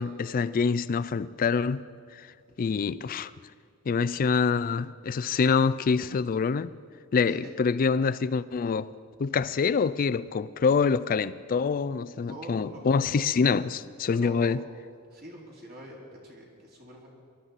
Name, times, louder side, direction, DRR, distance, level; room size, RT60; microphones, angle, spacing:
voice 1, 0.0-1.9 2.1-2.3 2.6-3.3 3.9-6.7 7.1-8.9 9.2-14.6, left 5 dB, 40° left, 0.3 m, -26 dB
voice 2, 12.2-13.2 14.1-14.6 15.1-17.1, equal, 45° right, 2.9 m, -45 dB
21.0 x 12.5 x 4.1 m
head